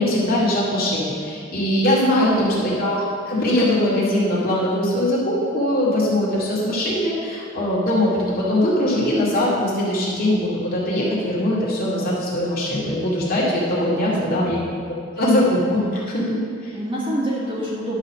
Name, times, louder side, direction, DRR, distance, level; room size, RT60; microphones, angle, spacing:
voice 1, 0.0-3.0 3.3-14.6 15.2-16.7, left 1 dB, 45° left, -7 dB, 2.3 m, -21 dB
voice 2, 2.1-2.7 13.9-14.5 16.7-18.0, equal, 25° right, -6 dB, 1.7 m, -28 dB
11.0 x 4.2 x 6.2 m, 2.2 s
head